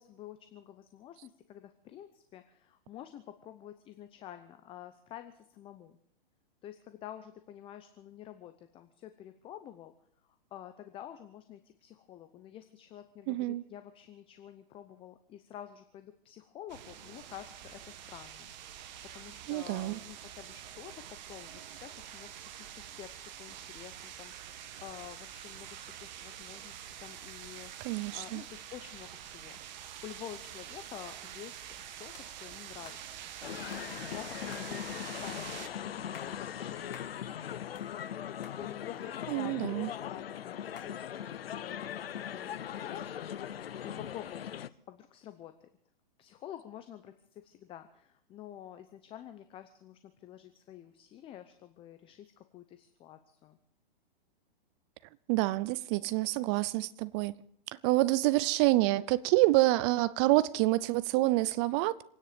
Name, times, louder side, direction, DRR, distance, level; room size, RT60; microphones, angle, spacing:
voice 1, 0.0-6.0 6.6-9.9 10.3-20.9 21.3-39.8 40.1-45.7 46.2-53.6, left 11 dB, 20° left, 0.7 m, -49 dB
voice 2, 13.3-13.6 19.5-20.0 27.8-28.4 39.3-39.9 55.3-57.3 57.8-62.0, right 19 dB, 30° right, 0.5 m, -27 dB
sound 1, 16.7-35.7, right 10 dB, 50° right, 1.4 m, -46 dB
sound 2, 32.1-32.3 32.8-33.0 33.7-33.9 34.5-34.7 35.4-35.5 36.0-36.3 36.9-37.1 37.5-38.2 38.4-38.6 39.3-39.9 40.8-40.9, left 7 dB, 70° left, 2.7 m, -52 dB
sound 3, 33.4-44.7, left 9 dB, 85° left, 0.8 m, -40 dB
26.5 x 9.9 x 5.1 m
hypercardioid pair, 140°, 29 cm